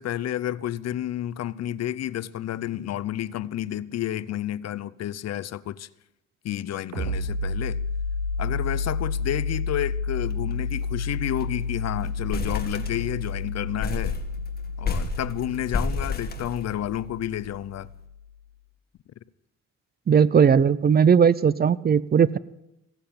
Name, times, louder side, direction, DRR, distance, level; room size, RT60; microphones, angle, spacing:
voice 1, 0.0-5.9 6.4-7.8 8.4-14.2 14.8-17.9, left 12 dB, 60° left, 0.6 m, -30 dB
sound 1, 6.9-18.3, left 4 dB, 80° right, 4.9 m, -31 dB
sound 2, 10.3-10.5 10.8-10.9 11.2-11.6 12.0-13.3 13.8-17.1, left 4 dB, 30° left, 1.8 m, -31 dB
voice 2, 20.1-22.4, right 7 dB, 30° right, 0.5 m, -18 dB
16.0 x 7.7 x 8.5 m
cardioid pair, 90°, 30 cm